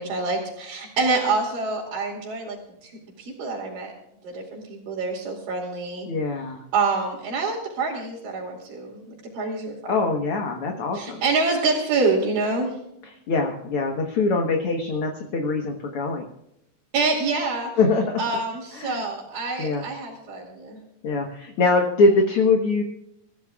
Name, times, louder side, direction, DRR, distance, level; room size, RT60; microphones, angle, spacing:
voice 1, 0.0-2.9 3.2-3.9 4.2-6.1 6.7-9.8 10.9-12.7 16.9-17.7 18.2-20.8, right 3 dB, 90° right, -5 dB, 4.3 m, -26 dB
voice 2, 6.1-6.6 9.9-11.2 13.3-16.3 17.8-18.2 18.7-19.0 19.6-19.8 21.0-22.8, left 3 dB, 55° left, 3 dB, 1.8 m, -23 dB
26.5 x 14.5 x 2.4 m, 0.81 s
omnidirectional pair, 3.8 m